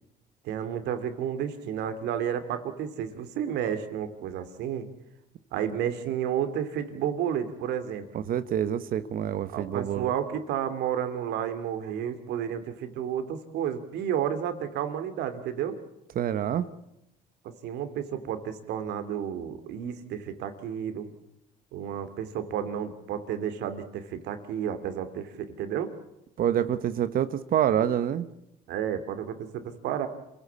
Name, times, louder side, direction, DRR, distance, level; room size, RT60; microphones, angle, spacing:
voice 1, 0.4-4.9 5.5-8.2 9.5-15.8 17.6-21.1 21.7-25.9 28.7-30.1, right 9 dB, 80° right, 10 dB, 2.6 m, -31 dB
voice 2, 8.1-10.1 16.1-16.7 26.4-28.3, right 10 dB, 60° right, 13 dB, 1.1 m, -27 dB
27.5 x 16.0 x 8.5 m, 0.88 s
cardioid pair, 110°, 17 cm